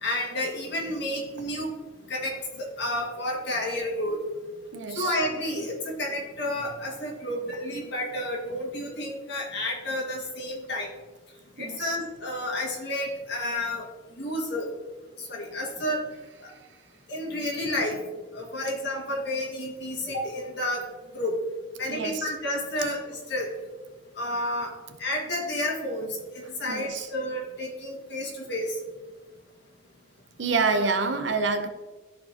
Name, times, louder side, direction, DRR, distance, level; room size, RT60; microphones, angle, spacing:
voice 1, 0.0-1.7 2.1-4.2 4.9-10.9 11.6-13.9 14.2-14.7 15.2-16.0 16.4-16.5 17.1-18.0 18.3-20.8 21.1-21.4 21.8-23.5 24.2-24.7 25.0-28.8, left 1 dB, 60° left, 1.8 m, -31 dB
voice 2, 4.7-5.1 11.6-12.0 21.9-22.3 26.7-27.1 30.4-31.7, right 4 dB, 70° right, 0.7 m, -27 dB
13.0 x 4.5 x 2.8 m
head